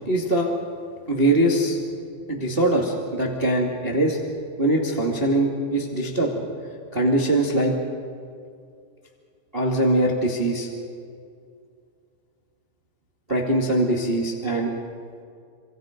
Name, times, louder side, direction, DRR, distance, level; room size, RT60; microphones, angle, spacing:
voice 1, 0.0-0.5 1.1-1.8 2.3-4.2 4.6-6.3 6.9-7.7 9.5-10.7 13.3-14.7, right 1 dB, 50° right, 0 dB, 0.6 m, -22 dB
28.0 x 25.5 x 5.2 m, 2.3 s
omnidirectional pair, 5.4 m